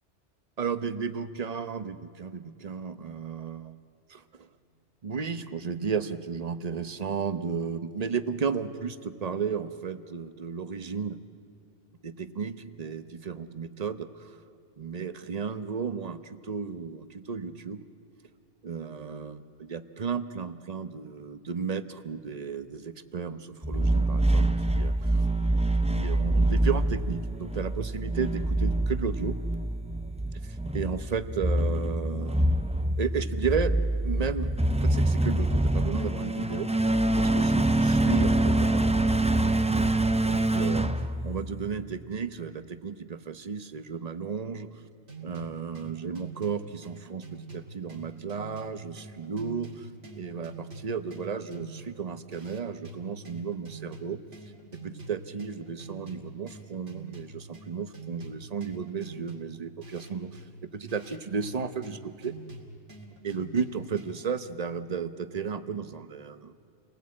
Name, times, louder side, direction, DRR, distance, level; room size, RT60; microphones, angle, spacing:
voice 1, 0.6-3.7 4.1-4.5 5.0-11.2 12.0-14.4 14.8-17.9 18.6-25.2 25.9-29.4 30.3-32.5 33.0-33.7 34.0-39.0 40.2-44.7 45.2-49.9 50.1-54.2 54.8-60.4 60.7-62.3 63.2-66.5, right 6 dB, 35° right, 11 dB, 0.9 m, -34 dB
sound 1, 23.6-41.8, right 1 dB, 10° right, 0.3 m, -25 dB
sound 2, 45.1-64.4, right 3 dB, 75° right, 2.9 m, -46 dB
29.0 x 19.5 x 8.5 m, 2.5 s
omnidirectional pair, 1.2 m